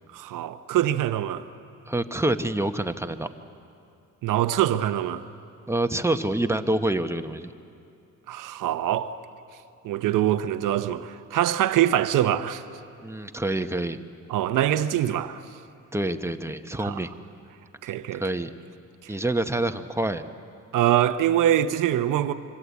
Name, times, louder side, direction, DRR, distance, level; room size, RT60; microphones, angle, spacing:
voice 1, 0.1-1.4 4.2-5.3 8.3-9.2 9.8-12.6 14.3-15.4 16.8-17.0 17.8-18.2 19.0-19.1 20.7-22.3, right 12 dB, 85° right, 0.9 m, -24 dB
voice 2, 1.9-3.3 5.7-7.5 13.0-14.0 15.9-17.1 18.1-18.5 19.1-20.3, right 1 dB, 10° right, 1.1 m, -27 dB
26.0 x 24.5 x 8.4 m
cardioid pair, 95°, 31 cm